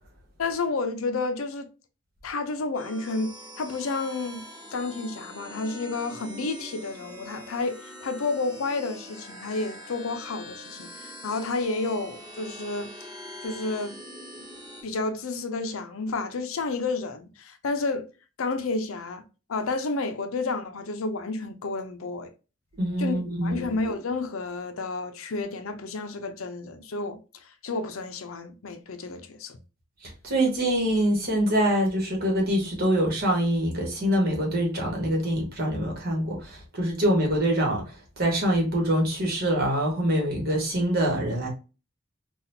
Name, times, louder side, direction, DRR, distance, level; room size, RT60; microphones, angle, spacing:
voice 1, 0.4-1.7 2.2-4.4 4.7-12.9 13.4-14.0 14.8-18.1 18.4-19.2 19.5-22.3 23.0-29.6, left 3 dB, 80° left, 0.6 m, -31 dB
sound 1, 2.7-14.8, equal, 20° right, 1.9 m, -43 dB
voice 2, 22.8-23.7 30.2-37.8 38.2-41.5, equal, 45° right, 1.4 m, -24 dB
4.1 x 2.4 x 2.7 m
head